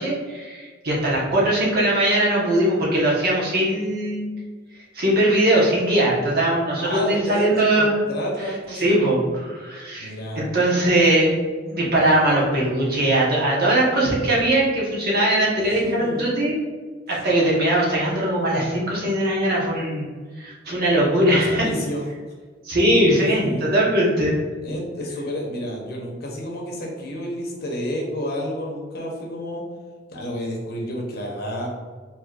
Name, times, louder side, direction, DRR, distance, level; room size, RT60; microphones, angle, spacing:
voice 1, 0.0-4.3 4.9-7.9 8.4-11.3 11.7-16.6 17.1-20.1 20.4-21.7 22.6-24.3, right 1 dB, 55° right, -5 dB, 1.1 m, -20 dB
voice 2, 6.8-9.0 10.0-10.4 15.7-16.2 21.3-22.0 22.9-23.7 24.6-29.6 30.1-31.7, equal, 55° left, -1 dB, 0.8 m, -30 dB
4.7 x 2.9 x 2.4 m, 1.5 s
head